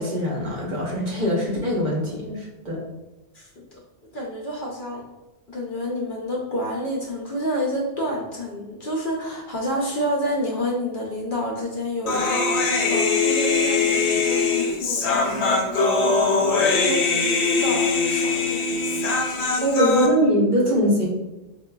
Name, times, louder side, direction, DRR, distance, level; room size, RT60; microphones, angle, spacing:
voice 1, 0.0-2.8 19.6-21.1, equal, 50° right, -3 dB, 0.8 m, -22 dB
voice 2, 3.3-3.8 4.1-5.0 5.5-19.7, equal, 60° left, -2 dB, 0.6 m, -29 dB
Human voice, 12.1-20.1, left 4 dB, 85° left, 0.9 m, -22 dB
4.6 x 2.1 x 2.2 m, 1.0 s
omnidirectional pair, 1.1 m